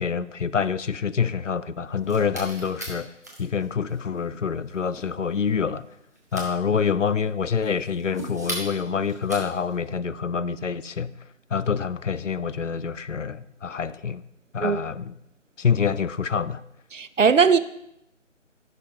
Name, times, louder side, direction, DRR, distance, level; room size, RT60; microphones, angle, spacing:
voice 1, 0.0-3.1 3.4-5.8 6.3-11.1 11.5-14.2 14.5-15.1 15.6-16.6, left 6 dB, 75° left, 0.6 m, -26 dB
sound 1, 1.9-9.8, right 1 dB, 15° right, 0.8 m, -40 dB
voice 2, 16.9-17.6, right 5 dB, 80° right, 0.6 m, -19 dB
14.5 x 6.0 x 3.4 m
figure-of-eight pair, 155°, 37 cm